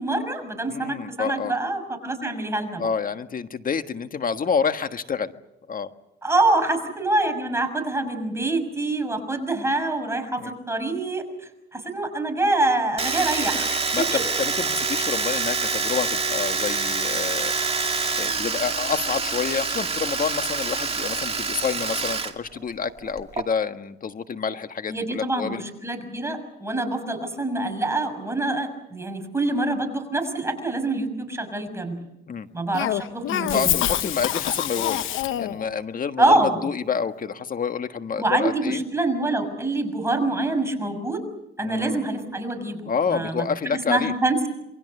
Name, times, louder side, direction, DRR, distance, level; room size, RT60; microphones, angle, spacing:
voice 1, 0.0-2.8 6.2-11.2 11.7-13.7 14.1-14.2 24.9-32.0 32.5-33.7 36.2-36.6 38.2-41.2 41.6-42.8 43.1-44.5, right 2 dB, 15° right, 5 dB, 6.2 m, -25 dB
voice 2, 0.7-1.6 2.8-5.3 5.7-5.9 10.4-10.5 13.6-17.5 18.2-25.6 32.3-32.5 33.5-38.8 41.6-42.0 42.9-44.1, left 6 dB, 45° left, 9 dB, 1.5 m, -28 dB
Domestic sounds home sounds, 13.0-22.3 22.6-23.4, right 4 dB, 30° right, 2.3 m, -26 dB
Cough, 32.7-35.7, left 12 dB, 80° left, 1.0 m, -26 dB
28.0 x 23.0 x 6.7 m, 0.89 s
cardioid pair, 90°, 20 cm